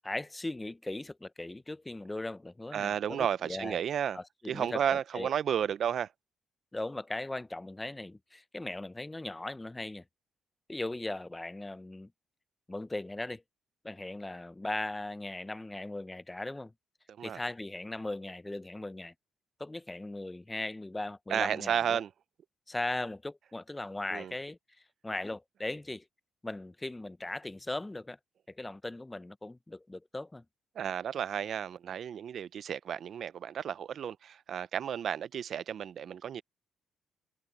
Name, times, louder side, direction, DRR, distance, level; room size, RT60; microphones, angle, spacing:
voice 1, 0.0-3.8 4.1-5.3 6.7-10.0 10.7-12.1 12.7-13.4 13.8-16.7 17.2-19.1 19.6-22.0 22.7-24.6 25.0-26.0 26.4-28.2 28.5-30.4, left 2 dB, 15° left, 0.7 m, -38 dB
voice 2, 2.7-4.2 4.5-6.1 17.1-17.4 21.3-22.1 24.1-24.3 30.8-36.4, right 8 dB, 60° right, 0.6 m, -32 dB
cardioid pair, 90°, 0 cm